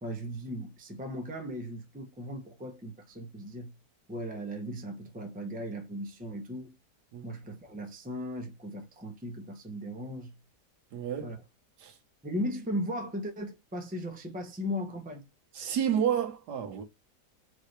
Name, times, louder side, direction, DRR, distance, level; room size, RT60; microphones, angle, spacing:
voice 1, 0.0-3.7 4.1-6.7 7.2-10.4 11.2-11.4 12.2-15.3, equal, 10° right, 0.6 m, -37 dB
voice 2, 10.9-11.4 11.8-11.9 15.5-16.8, right 9 dB, 75° right, 1.5 m, -30 dB
4.8 x 2.7 x 3.2 m
omnidirectional pair, 1.8 m